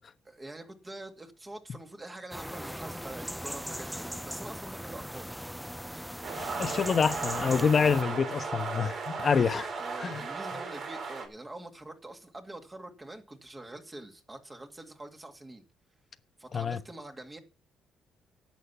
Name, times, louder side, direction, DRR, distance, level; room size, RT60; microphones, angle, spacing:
voice 1, 0.2-5.3 9.3-15.6 16.4-17.4, right 2 dB, 20° right, 2.4 m, -45 dB
sound 1, 2.3-8.0, equal, ahead, 0.6 m, -39 dB
sound 2, 6.2-11.3, right 4 dB, 60° right, 4.5 m, -36 dB
voice 2, 6.4-9.6 10.0-10.2 16.5-16.8, left 6 dB, 45° left, 1.1 m, -27 dB
11.5 x 7.9 x 7.1 m
supercardioid pair, 75°, 0 cm